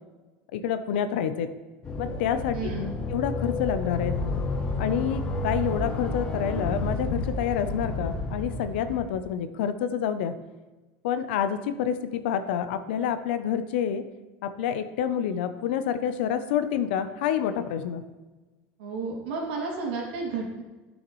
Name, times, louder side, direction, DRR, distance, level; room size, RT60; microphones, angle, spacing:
voice 1, 0.5-1.5 2.0-2.6 3.1-4.1 4.8-10.3 11.0-14.0 14.4-18.0, left 8 dB, 75° left, 10 dB, 0.6 m, -28 dB
sound 1, 1.8-9.2, left 2 dB, 20° left, 0.9 m, -30 dB
voice 2, 2.5-2.9 18.8-20.6, right 4 dB, 90° right, -2 dB, 2.7 m, -32 dB
13.0 x 6.4 x 3.1 m, 1.2 s
cardioid pair, 170°, 6 cm